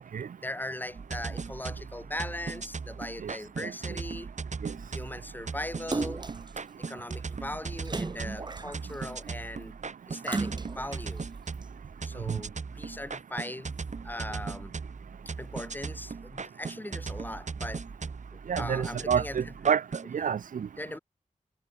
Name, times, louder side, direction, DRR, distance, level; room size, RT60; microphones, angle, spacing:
voice 1, 0.4-4.3 4.9-6.2 6.8-9.7 10.1-11.3 12.0-13.8 14.0-14.8 15.4-17.8 18.6-19.4 20.8-21.0, left 1 dB, 15° left, 6.2 m, -39 dB
sound 1, 0.9-20.1, right 4 dB, 65° right, 6.2 m, -38 dB
Splash splatter, 5.9-6.5 7.8-9.1 10.2-11.0 11.6-11.7, right 3 dB, 35° right, 1.3 m, -34 dB
voice 2, 18.5-19.8 20.1-20.7, right 7 dB, 85° right, 0.5 m, -28 dB
wide cardioid pair, 100°, 13 cm